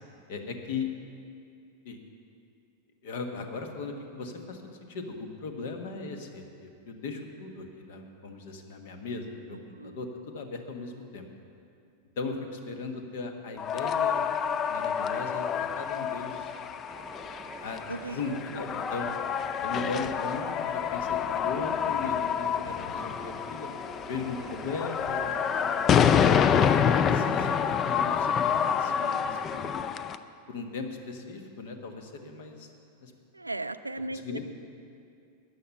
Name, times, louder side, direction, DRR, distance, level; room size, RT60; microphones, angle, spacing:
voice 1, 0.3-0.9 1.8-2.0 3.0-11.2 12.2-14.3 14.7-16.5 17.6-19.1 19.6-23.7 23.9-25.8 26.8-29.8 30.5-32.7 33.0-33.1 34.1-34.4, left 4 dB, 55° left, 5 dB, 1.4 m, -38 dB
sound 1, 13.6-30.2, left 7 dB, 30° left, 0.4 m, -27 dB
sound 2, 16.9-27.8, right 5 dB, 25° right, 0.7 m, -45 dB
voice 2, 17.9-18.6 33.3-34.4, right 2 dB, 85° right, 12 dB, 0.4 m, -37 dB
14.0 x 9.9 x 5.6 m, 2.5 s
figure-of-eight pair, 90°, 0 cm